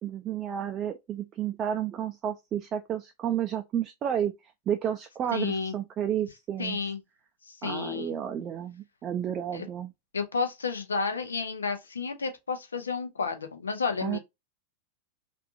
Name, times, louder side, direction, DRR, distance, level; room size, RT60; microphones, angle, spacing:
voice 1, 0.0-4.3 4.7-6.8 7.6-9.9 14.0-14.2, right 9 dB, 30° right, 0.4 m, -31 dB
voice 2, 5.3-5.7 6.6-7.0 7.5-8.2 9.5-9.6 10.1-14.2, left 5 dB, 75° left, 0.7 m, -31 dB
3.5 x 2.5 x 2.4 m
figure-of-eight pair, 90°, 0 cm